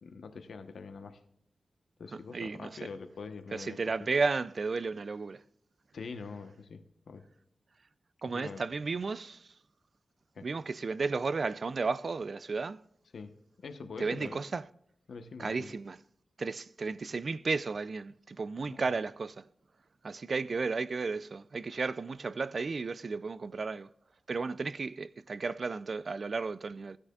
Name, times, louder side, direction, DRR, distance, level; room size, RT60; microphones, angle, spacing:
voice 1, 0.0-1.2 2.0-3.8 5.9-7.3 8.3-8.6 10.3-10.5 13.1-14.4 15.1-15.7 18.7-18.9, left 4 dB, 80° left, 1.0 m, -44 dB
voice 2, 2.3-2.7 3.5-5.4 8.2-9.5 10.4-12.8 14.0-14.6 15.4-16.0 16.4-19.4 20.0-23.9 24.3-27.0, right 4 dB, 55° right, 0.4 m, -33 dB
15.5 x 9.7 x 2.4 m
wide cardioid pair, 90°, 0 cm